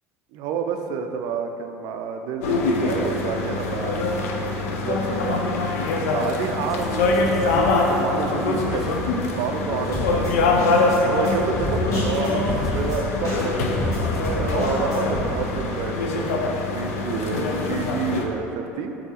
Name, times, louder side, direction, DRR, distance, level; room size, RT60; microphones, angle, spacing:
voice 1, 0.3-4.1 4.8-5.6 6.1-8.9 9.4-10.6 11.0-13.5 14.3-19.0, right 6 dB, 60° right, 5 dB, 0.3 m, -29 dB
sound 1, 2.4-18.3, left 3 dB, 75° left, 0.4 m, -24 dB
sound 2, 6.7-14.7, left 1 dB, 5° right, 0.5 m, -38 dB
Drum kit, 9.9-15.3, left 1 dB, 40° left, 1.4 m, -29 dB
3.7 x 2.8 x 4.0 m, 3.0 s
hypercardioid pair, 80°, 8 cm